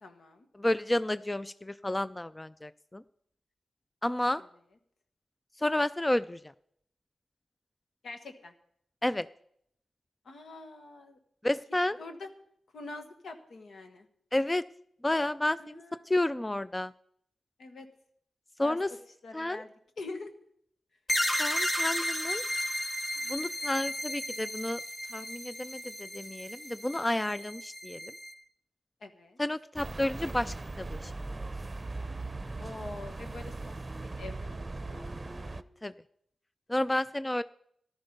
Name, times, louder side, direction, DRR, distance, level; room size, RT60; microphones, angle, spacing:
voice 1, 0.0-0.5 4.4-4.5 8.0-8.5 10.2-11.2 12.0-12.3 12.7-14.1 15.6-16.1 17.6-17.9 18.6-18.8 19.2-20.3 29.0-29.4 32.6-35.3, left 3 dB, 75° left, 6 dB, 1.6 m, -45 dB
voice 2, 0.5-3.0 4.0-4.4 5.6-6.4 9.0-9.3 11.4-12.0 14.3-14.6 15.0-15.8 16.1-16.9 18.6-18.9 19.3-19.6 21.4-22.4 23.3-24.8 25.1-28.1 29.4-31.1 35.8-35.9 36.7-37.4, left 1 dB, 20° left, 15 dB, 0.4 m, -31 dB
sound 1, 21.1-28.3, equal, 40° left, 2.8 m, -34 dB
sound 2, 29.7-35.6, right 2 dB, 30° right, 0.7 m, -39 dB
14.0 x 11.5 x 5.3 m, 0.71 s
cardioid pair, 50°, 0 cm